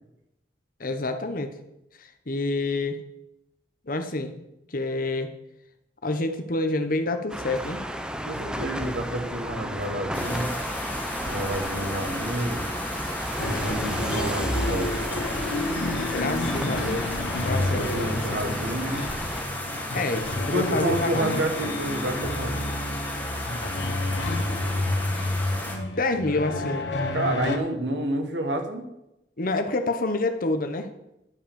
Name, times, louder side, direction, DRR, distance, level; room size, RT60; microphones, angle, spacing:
voice 1, 0.8-1.5 2.0-3.0 3.8-5.3 6.0-7.8 12.1-12.2 16.1-18.6 19.9-21.4 25.7-26.9 29.4-30.9, left 2 dB, 55° left, 7 dB, 1.1 m, -28 dB
sound 1, 7.3-19.4, equal, 5° right, 0.7 m, -33 dB
voice 2, 8.3-10.5 11.2-12.7 13.5-14.9 17.6-19.0 20.4-22.6 27.1-28.8, right 1 dB, 90° right, 4 dB, 1.8 m, -29 dB
sound 2, 10.1-25.8, left 1 dB, 10° left, 2.1 m, -34 dB
sound 3, 13.4-27.6, left 2 dB, 90° left, 1.2 m, -30 dB
11.0 x 5.4 x 7.0 m, 0.87 s
head